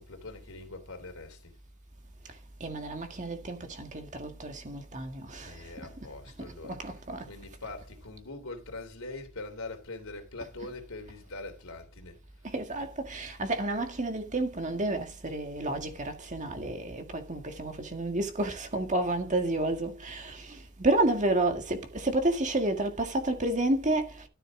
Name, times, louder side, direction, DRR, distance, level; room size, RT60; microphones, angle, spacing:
voice 1, 0.0-1.5 5.4-6.8 7.3-12.2, left 2 dB, 75° left, 3.3 m, -43 dB
voice 2, 2.6-5.6 6.7-7.3 12.4-24.3, right 2 dB, 35° right, 1.8 m, -30 dB
13.0 x 7.0 x 3.8 m
head